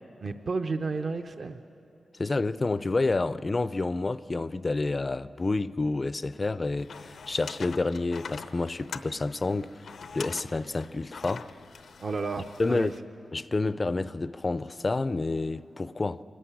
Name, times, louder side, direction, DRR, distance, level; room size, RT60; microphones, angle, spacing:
voice 1, 0.2-1.6 12.0-12.9, right 4 dB, 45° right, 0.6 m, -32 dB
voice 2, 2.1-9.8 10.1-11.5 12.6-12.9 13.3-16.2, left 3 dB, 30° left, 0.4 m, -29 dB
sound 1, 6.8-13.0, left 5 dB, 85° left, 0.8 m, -44 dB
25.0 x 14.5 x 9.9 m
wide cardioid pair, 120°, 0 cm